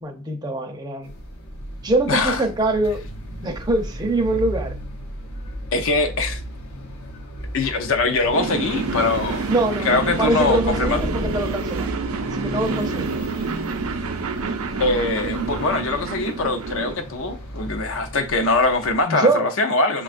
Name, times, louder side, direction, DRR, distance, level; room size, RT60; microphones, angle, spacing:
voice 1, 0.0-1.1 1.8-3.0 3.4-4.8 9.5-11.9 12.3-13.1 19.1-19.5, right 2 dB, 20° right, 0.5 m, -23 dB
sound 1, 1.0-19.0, equal, 90° left, 0.8 m, -35 dB
voice 2, 2.1-2.4 5.7-6.4 7.5-9.5 9.8-11.0 14.8-20.0, left 3 dB, 65° left, 0.6 m, -22 dB
sound 2, 8.3-16.9, right 4 dB, 75° right, 0.4 m, -28 dB
sound 3, 9.9-12.8, left 1 dB, 25° left, 0.7 m, -33 dB
6.3 x 2.3 x 2.5 m
head